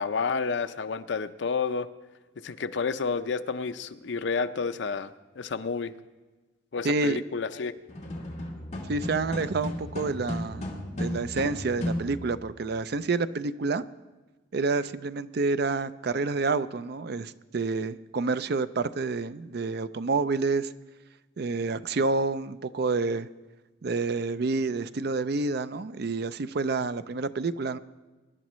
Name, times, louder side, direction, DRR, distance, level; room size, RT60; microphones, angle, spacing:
voice 1, 0.0-1.9 2.4-5.1 5.4-5.9 6.7-7.7, left 5 dB, 65° left, 11 dB, 0.6 m, -30 dB
voice 2, 6.8-7.2 8.9-13.8 14.5-20.7 21.4-23.3 23.8-27.8, right 3 dB, 55° right, 14 dB, 0.5 m, -28 dB
sound 1, 7.9-12.5, left 1 dB, 35° left, 2.0 m, -35 dB
24.0 x 11.0 x 3.1 m, 1.2 s
head